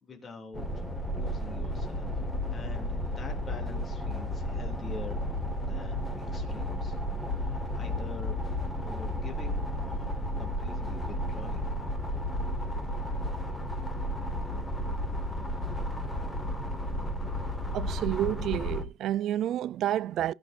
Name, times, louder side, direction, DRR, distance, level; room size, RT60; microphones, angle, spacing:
voice 1, 0.0-0.9 1.1-2.2 2.5-5.2 5.6-8.4 8.8-11.7 15.9-16.0, left 4 dB, 35° left, 2.8 m, -46 dB
sound 1, 0.5-18.8, left 1 dB, 15° left, 1.9 m, -33 dB
voice 2, 17.7-20.3, right 12 dB, 60° right, 0.4 m, -29 dB
16.5 x 6.3 x 2.6 m
supercardioid pair, 80°, 0 cm